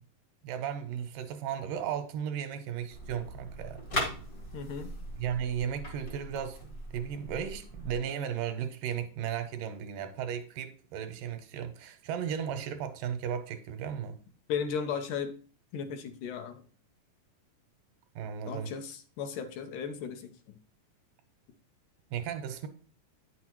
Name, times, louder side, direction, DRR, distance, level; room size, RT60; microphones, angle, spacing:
voice 1, 0.4-3.8 5.2-14.2 18.2-18.7 22.1-22.7, right 8 dB, 80° right, 2.2 m, -35 dB
sound 1, 2.9-7.9, equal, 50° left, 1.0 m, -39 dB
voice 2, 4.5-5.0 14.5-15.3 15.7-16.6 18.5-20.6, left 6 dB, 75° left, 2.1 m, -36 dB
9.3 x 6.3 x 3.0 m
omnidirectional pair, 3.9 m